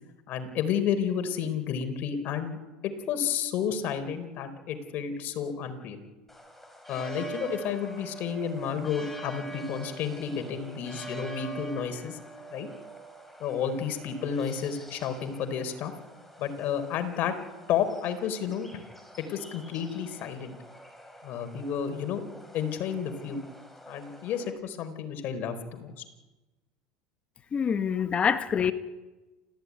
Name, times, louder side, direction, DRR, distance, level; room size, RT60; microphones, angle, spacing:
voice 1, 0.3-2.6 2.8-6.0 6.9-12.2 12.5-12.7 13.4-15.9 16.4-17.3 17.7-18.8 19.2-20.6 21.2-22.2 22.5-23.4 23.9-25.9, left 7 dB, 55° left, 8 dB, 4.3 m, -31 dB
sound 1, 6.3-24.5, right 2 dB, 5° left, 5.7 m, -45 dB
voice 2, 27.5-28.7, left 7 dB, 30° left, 10 dB, 1.6 m, -25 dB
27.5 x 15.0 x 9.7 m, 1.2 s
supercardioid pair, 100°, 4 cm